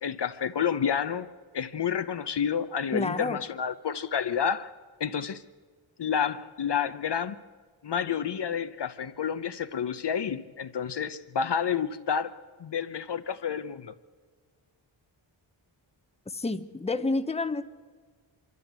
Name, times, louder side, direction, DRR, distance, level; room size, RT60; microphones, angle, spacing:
voice 1, 0.0-1.3 1.5-4.7 5.0-5.4 6.0-7.4 7.8-13.9, left 7 dB, 55° left, 0.9 m, -30 dB
voice 2, 2.9-3.4 16.3-17.6, left 3 dB, 10° left, 0.9 m, -29 dB
24.5 x 13.5 x 8.2 m
cardioid pair, 55°, 49 cm